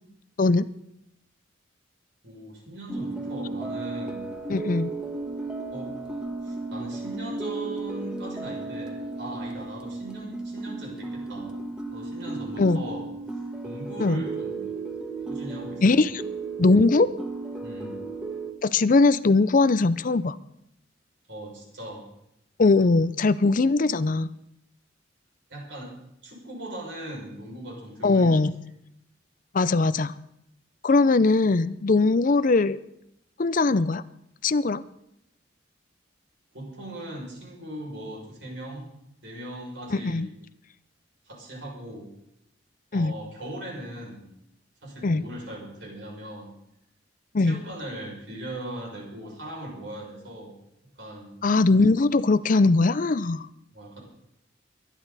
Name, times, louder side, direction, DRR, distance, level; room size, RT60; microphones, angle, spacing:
voice 1, 2.2-4.3 5.7-5.9 6.4-11.5 11.9-13.1 13.6-14.7 15.2-16.0 17.6-18.0 21.3-22.1 25.5-25.9 26.2-28.3 36.5-40.3 41.2-42.1 42.9-44.3 44.8-46.5 47.4-50.5 51.0-51.4 53.7-54.0, right 1 dB, 65° right, -2 dB, 6.2 m, -39 dB
sound 1, 2.9-18.5, right 3 dB, 5° right, 1.2 m, -34 dB
voice 2, 4.5-4.9 12.6-12.8 14.0-14.2 15.8-16.2 16.6-17.1 18.6-20.4 22.6-24.3 28.0-28.5 29.5-30.1 30.8-32.8 33.4-34.0 34.4-34.8 39.9-40.3 42.9-43.1 45.0-45.2 47.3-47.6 51.4-53.5, left 3 dB, 45° left, 15 dB, 0.5 m, -20 dB
23.0 x 11.0 x 4.1 m, 0.77 s
head